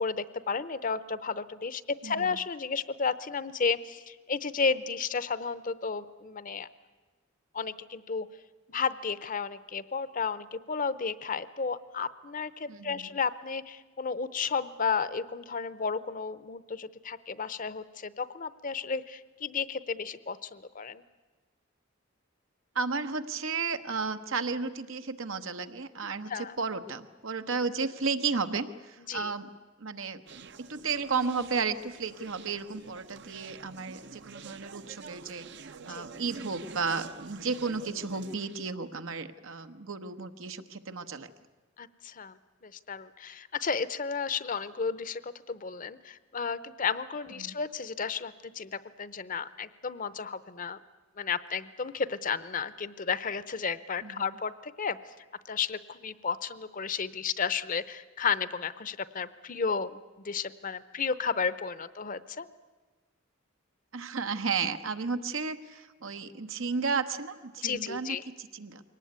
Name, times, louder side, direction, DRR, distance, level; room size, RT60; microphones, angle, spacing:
voice 1, 0.0-6.7 7.5-8.3 8.7-21.0 26.3-26.5 29.1-29.3 35.8-36.0 41.8-42.4 42.6-50.8 51.2-55.0 55.5-62.5 67.6-68.2, left 5 dB, 40° left, 16 dB, 0.7 m, -33 dB
voice 2, 2.0-2.4 12.7-13.1 22.7-29.5 29.8-41.3 47.4-47.5 54.0-54.4 63.9-68.8, right 4 dB, 80° right, 9 dB, 1.1 m, -33 dB
Conversation, 30.3-38.7, right 5 dB, 60° right, 0.7 m, -48 dB
22.5 x 18.5 x 9.5 m, 1.3 s
head